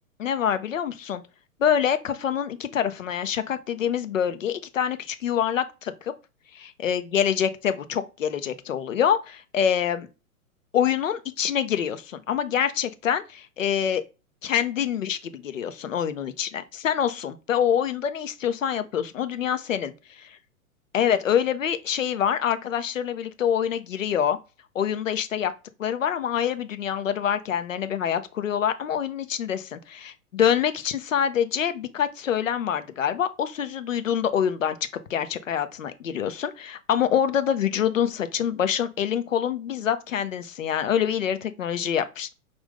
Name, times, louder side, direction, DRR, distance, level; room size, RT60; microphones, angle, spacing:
voice 1, 0.2-1.2 1.6-6.1 6.5-10.1 10.7-14.0 14.4-19.9 20.9-24.4 24.7-25.5 25.8-34.8 35.1-42.3, left 9 dB, 65° left, 0.7 m, -26 dB
5.1 x 2.6 x 3.5 m
figure-of-eight pair, 110°, 42 cm